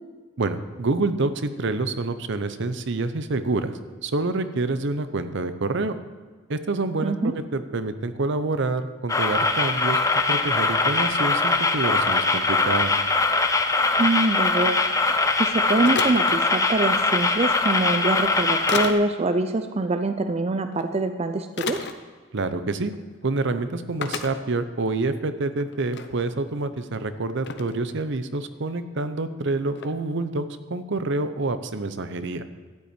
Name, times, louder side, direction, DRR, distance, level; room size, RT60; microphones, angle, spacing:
voice 1, 0.4-3.7 4.0-6.0 6.5-10.0 10.3-12.9 22.3-22.9 23.2-32.4, right 3 dB, 65° right, 11 dB, 0.7 m, -27 dB
voice 2, 7.0-7.3 14.0-14.8 15.4-21.8, right 2 dB, 30° right, 8 dB, 0.5 m, -24 dB
sound 1, 9.1-18.9, left 3 dB, 15° left, 0.7 m, -22 dB
sound 2, 15.8-16.4 17.7-17.9 18.7-19.0 20.7-20.8 21.6-21.9 22.8-23.0 23.2-23.3 24.0-24.3 25.0-25.1 25.5-26.1 26.8-26.9 27.5-27.7 29.7-29.9, left 5 dB, 60° left, 0.8 m, -31 dB
12.5 x 5.6 x 9.1 m, 1.5 s
head